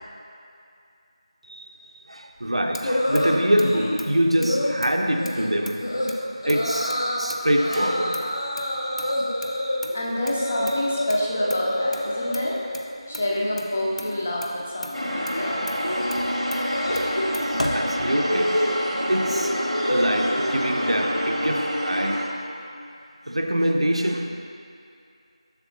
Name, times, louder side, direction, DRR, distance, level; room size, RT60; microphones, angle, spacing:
voice 1, 1.4-8.3 9.0-9.1 17.7-18.6 19.1-19.6 19.9-22.3 23.2-24.3, equal, 65° right, 3 dB, 0.6 m, -25 dB
Motor vehicle (road), 2.4-18.6, left 1 dB, 75° left, 0.6 m, -39 dB
sound 1, 2.8-4.0 4.4-4.8 5.2-5.5 5.8-6.1 6.4-7.2 7.6-11.1 11.3-12.6 12.9-13.4 13.6-21.8, left 1 dB, 45° left, 0.8 m, -28 dB
voice 2, 9.9-12.5 13.1-15.9, left 1 dB, 15° left, -3 dB, 0.3 m, -27 dB
sound 2, 14.9-22.3, equal, 90° right, 1.1 m, -27 dB
7.0 x 7.0 x 2.7 m, 2.5 s
figure-of-eight pair, 170°, 3 cm